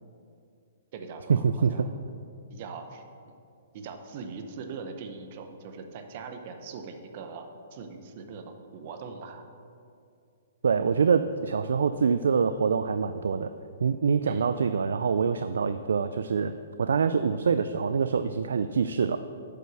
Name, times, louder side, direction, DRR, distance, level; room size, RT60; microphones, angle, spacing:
voice 1, 0.9-1.9 2.5-3.0 3.7-9.5 14.3-14.5, right 5 dB, 40° right, 6 dB, 0.8 m, -41 dB
voice 2, 10.6-13.5 13.8-19.2, right 6 dB, 85° right, 11 dB, 0.3 m, -25 dB
7.7 x 5.4 x 6.4 m, 2.4 s
hypercardioid pair, 160°, 0 cm